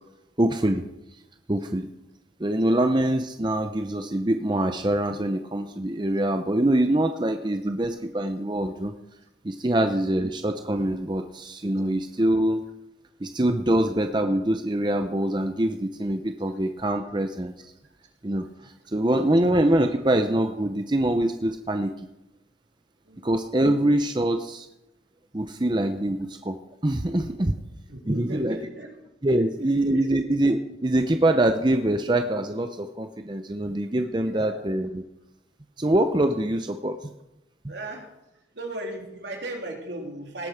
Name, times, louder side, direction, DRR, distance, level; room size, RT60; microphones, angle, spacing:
voice 1, 0.4-0.8 1.5-1.9 2.4-8.9 9.4-12.6 13.2-17.5 18.2-22.1 23.2-24.7 25.3-26.6 26.8-27.5 28.1-28.6 29.2-35.0 35.8-37.1 37.6-37.7, right 1 dB, 25° right, 6 dB, 0.7 m, -24 dB
voice 2, 23.0-23.4 27.9-28.9 29.3-30.1 34.2-34.6 37.7-38.1 38.5-40.5, right 1 dB, 70° right, 1 dB, 3.3 m, -37 dB
18.0 x 8.4 x 5.8 m, 0.90 s
head